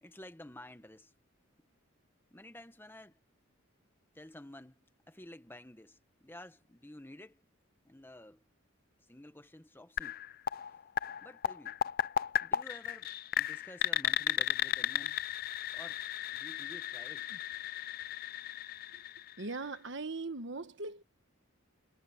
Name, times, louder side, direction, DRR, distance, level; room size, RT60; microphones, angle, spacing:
voice 1, 0.0-1.1 2.3-3.2 4.1-7.4 7.8-8.4 9.1-10.2 11.2-11.8 12.4-13.1 13.4-15.2 15.7-16.0 16.3-17.3, left 1 dB, 10° left, 1.1 m, -52 dB
sound 1, 10.0-19.8, left 11 dB, 45° left, 0.3 m, -35 dB
voice 2, 19.4-21.0, right 3 dB, 60° right, 1.3 m, -39 dB
head